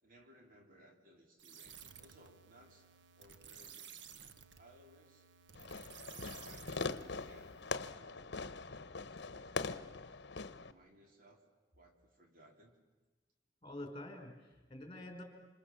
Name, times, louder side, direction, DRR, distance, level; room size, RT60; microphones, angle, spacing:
voice 1, 0.0-4.1 4.6-5.3 6.0-8.7 9.0-9.8 10.5-11.4 11.7-12.7, equal, 50° right, 2 dB, 3.7 m, -63 dB
sound 1, 1.4-7.7, right 7 dB, 75° right, 1.3 m, -55 dB
Fireworks, 5.5-10.7, left 4 dB, 65° left, 1.0 m, -42 dB
voice 2, 13.6-15.2, left 1 dB, 25° left, 3 dB, 4.9 m, -47 dB
27.5 x 27.0 x 7.3 m, 1.3 s
head